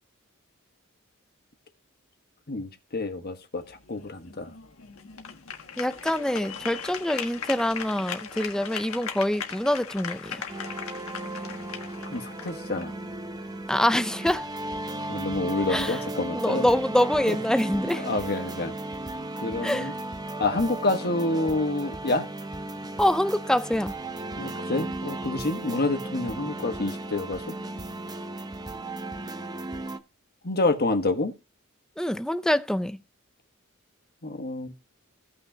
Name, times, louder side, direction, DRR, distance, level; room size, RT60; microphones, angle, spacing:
voice 1, 2.5-4.5 12.1-12.9 15.1-16.7 17.3-17.4 18.0-18.7 19.4-19.9 20.4-22.3 24.4-27.5 30.4-31.3 34.2-34.7, left 2 dB, 45° left, 1.3 m, -28 dB
sound 1, 3.6-13.7, left 7 dB, 70° left, 1.5 m, -39 dB
voice 2, 5.8-10.5 13.7-14.5 15.7-16.0 16.3-18.0 19.6-19.9 23.0-23.9 32.0-33.0, left 1 dB, 5° left, 0.5 m, -25 dB
sound 2, 10.5-30.0, right 2 dB, 20° right, 0.8 m, -35 dB
17.0 x 5.9 x 2.8 m
head